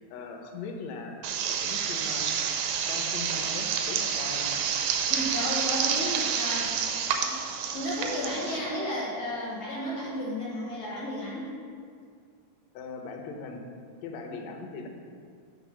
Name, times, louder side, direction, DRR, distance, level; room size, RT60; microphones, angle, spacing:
voice 1, 0.0-2.3 2.9-4.6 12.7-13.6 14.0-14.9, left 4 dB, 70° left, 2 dB, 1.8 m, -39 dB
sound 1, 1.2-8.6, right 7 dB, 90° right, 2.4 m, -29 dB
voice 2, 5.1-7.4 7.7-11.5, equal, 55° left, -5 dB, 1.6 m, -33 dB
8.8 x 3.8 x 6.2 m, 2.2 s
omnidirectional pair, 3.8 m